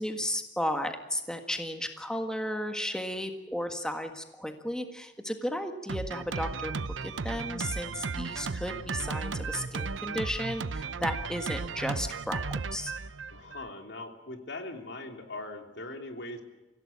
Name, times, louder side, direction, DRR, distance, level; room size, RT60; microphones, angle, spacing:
voice 1, 0.0-6.7 7.0-12.4 12.7-12.9, equal, 5° left, 5 dB, 1.6 m, -34 dB
Drum kit, 5.9-13.7, right 4 dB, 90° right, 0.8 m, -35 dB
voice 2, 13.3-16.4, left 2 dB, 65° left, 4 dB, 3.1 m, -40 dB
26.0 x 16.5 x 8.6 m, 1.1 s
head